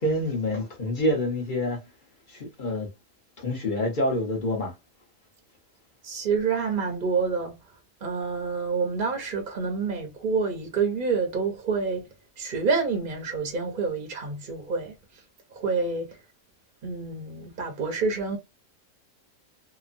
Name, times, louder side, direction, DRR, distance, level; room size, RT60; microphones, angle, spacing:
voice 1, 0.0-1.8 2.3-2.9 3.4-4.7, left 1 dB, 40° left, 0.9 m, -27 dB
voice 2, 6.0-7.6 8.0-12.1 12.4-15.2 15.5-16.2 16.8-18.4, right 4 dB, 45° right, 0.8 m, -28 dB
3.0 x 2.1 x 2.5 m
omnidirectional pair, 1.4 m